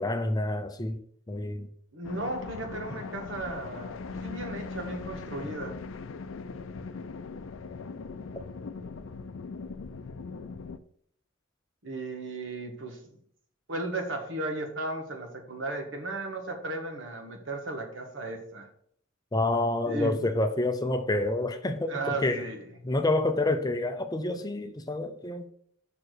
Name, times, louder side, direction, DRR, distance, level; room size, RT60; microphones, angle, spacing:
voice 1, 0.0-1.7 2.9-3.0 19.3-22.5 22.8-25.5, left 2 dB, 20° left, 0.6 m, -28 dB
voice 2, 1.9-5.8 11.8-13.1 13.7-18.7 19.9-20.3 21.9-22.6, right 2 dB, 70° right, 1.5 m, -35 dB
sound 1, 2.0-10.8, left 4 dB, 75° left, 0.5 m, -40 dB
6.1 x 4.7 x 6.4 m
head